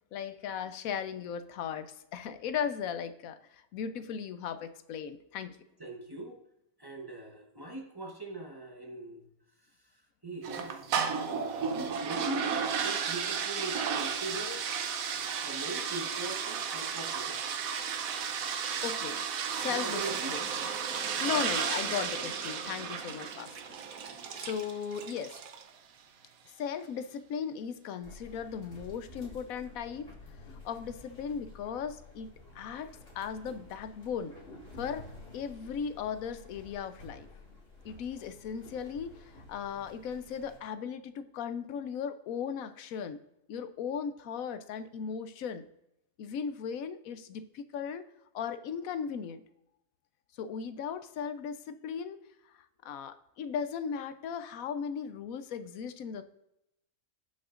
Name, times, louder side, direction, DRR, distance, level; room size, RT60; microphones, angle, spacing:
voice 1, 0.1-5.6 18.8-20.4 21.2-23.5 24.4-25.4 26.6-30.1 30.6-32.9 33.1-34.3 34.8-35.1 35.3-37.3 37.8-43.2 43.5-45.6 46.2-48.1 48.3-49.4 50.4-52.2 52.8-56.2, left 7 dB, 90° left, 11 dB, 1.1 m, -37 dB
voice 2, 5.8-6.4 6.8-9.2 9.6-10.9 12.0-14.6 15.4-17.6 19.7-20.3 22.1-22.3, right 2 dB, 20° right, 1 dB, 1.0 m, -41 dB
sound 1, 10.4-25.7, right 7 dB, 85° right, 1.2 m, -33 dB
sound 2, 28.0-40.6, left 2 dB, 45° left, 2.3 m, -51 dB
17.5 x 5.9 x 2.5 m, 0.84 s
omnidirectional pair, 1.4 m